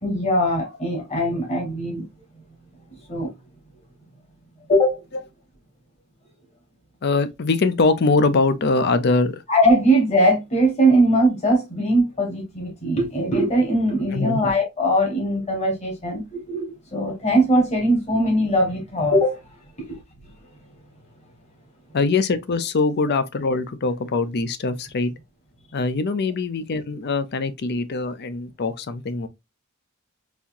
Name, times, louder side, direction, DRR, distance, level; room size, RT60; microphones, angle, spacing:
voice 1, 0.0-2.0 3.1-3.3 4.7-5.0 9.5-19.4 19.8-20.0, equal, 30° left, 1.6 m, -20 dB
voice 2, 7.0-9.4 14.1-14.4 21.9-25.1 25.7-29.3, left 3 dB, 50° left, 0.5 m, -22 dB
4.1 x 2.9 x 2.5 m
head